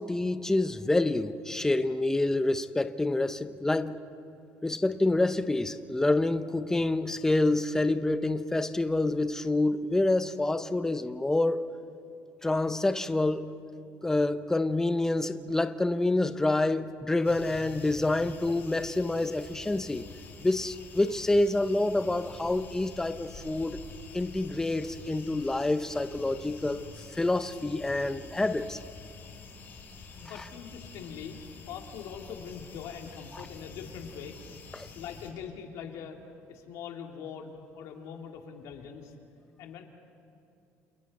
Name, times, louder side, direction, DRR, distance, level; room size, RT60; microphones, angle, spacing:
voice 1, 0.0-4.0 4.6-11.8 12.4-13.5 14.0-20.0 20.4-23.8 24.1-28.8 34.7-34.9, left 2 dB, 10° left, 0.7 m, -27 dB
sound 1, 17.2-35.3, left 4 dB, 35° left, 4.5 m, -47 dB
voice 2, 30.1-31.4 31.7-34.4 34.9-36.2 36.5-39.1 39.6-39.8, left 7 dB, 75° left, 2.5 m, -42 dB
29.0 x 28.0 x 4.2 m
cardioid pair, 130°, 6 cm